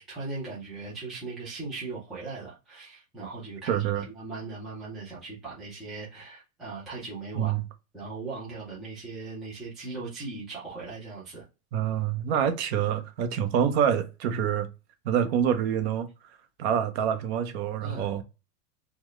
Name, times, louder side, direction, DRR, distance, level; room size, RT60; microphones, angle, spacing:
voice 1, 0.0-7.6 7.9-11.4 17.8-18.1, right 3 dB, ahead, 0.4 m, -39 dB
voice 2, 3.7-4.0 7.4-7.6 11.7-14.7 15.0-16.1 16.6-18.2, right 9 dB, 45° right, 0.6 m, -26 dB
3.9 x 2.1 x 3.0 m
supercardioid pair, 150°, 46 cm